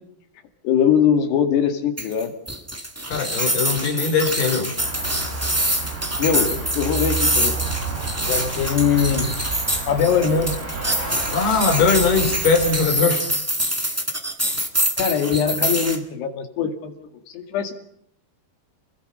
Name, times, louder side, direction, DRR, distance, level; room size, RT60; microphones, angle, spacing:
voice 1, 0.6-2.3 6.2-7.6 8.3-9.3 9.9-10.6 15.0-17.1 17.3-17.7, left 7 dB, 85° left, 7 dB, 4.3 m, -21 dB
sound 1, 2.0-16.0, right 1 dB, 15° right, 0.6 m, -25 dB
voice 2, 3.1-4.7 11.3-13.2, left 5 dB, 70° left, 5 dB, 6.1 m, -20 dB
Cricket, 4.8-12.7, right 4 dB, 80° right, 10.0 m, -30 dB
28.5 x 20.5 x 5.5 m, 0.73 s
omnidirectional pair, 4.7 m